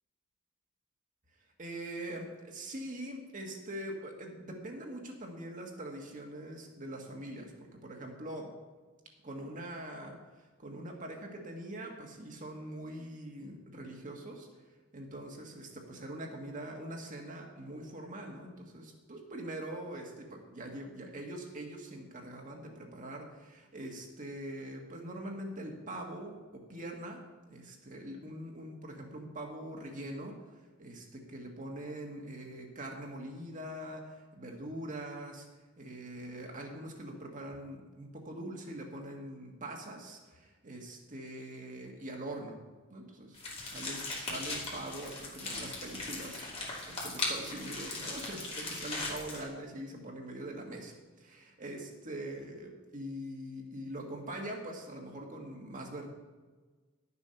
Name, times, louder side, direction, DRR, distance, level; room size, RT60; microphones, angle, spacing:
voice 1, 1.6-8.5 9.2-14.5 14.9-27.2 27.5-30.4 30.8-35.5 35.8-42.6 42.9-43.4 43.7-56.1, right 1 dB, 40° right, 1 dB, 1.6 m, -43 dB
sound 1, 43.3-49.4, left 2 dB, 30° left, 2.6 m, -38 dB
11.0 x 7.0 x 5.7 m, 1.3 s
head